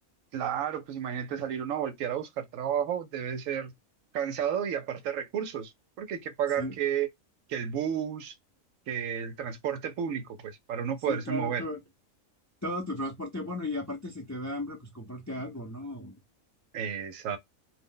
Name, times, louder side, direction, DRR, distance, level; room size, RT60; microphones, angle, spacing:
voice 1, 0.3-3.7 4.1-5.7 6.0-7.1 7.5-8.4 8.9-11.6 16.7-17.4, right 8 dB, 75° right, 0.9 m, -32 dB
voice 2, 11.1-11.8 12.6-16.1, left 1 dB, 20° left, 0.4 m, -35 dB
2.5 x 2.1 x 3.6 m
omnidirectional pair, 1.4 m